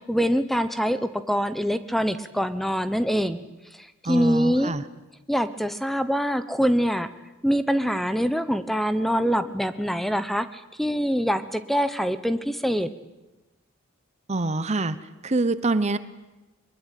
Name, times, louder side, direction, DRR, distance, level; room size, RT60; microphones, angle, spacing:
voice 1, 0.1-3.4 4.0-4.7 5.3-7.1 7.4-12.9, equal, ahead, 12 dB, 0.9 m, -24 dB
voice 2, 4.0-4.8 14.3-15.0 15.2-16.0, right 2 dB, 35° right, 15 dB, 0.9 m, -25 dB
23.0 x 21.5 x 9.3 m, 1.1 s
head